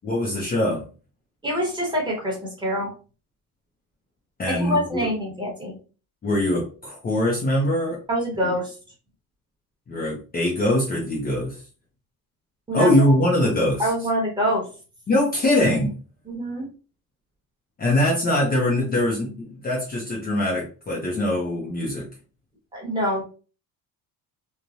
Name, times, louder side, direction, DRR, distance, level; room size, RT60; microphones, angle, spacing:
voice 1, 0.0-0.8 4.4-5.1 6.2-8.0 9.9-11.6 12.7-13.9 15.1-15.9 17.8-22.1, left 1 dB, 25° left, -2 dB, 0.6 m, -22 dB
voice 2, 1.4-2.9 4.5-5.8 8.1-8.7 12.7-13.1 13.8-14.6 16.3-16.7 22.7-23.2, equal, 10° right, -2 dB, 1.0 m, -25 dB
3.1 x 2.1 x 2.5 m, 0.36 s
cardioid pair, 155°, 37 cm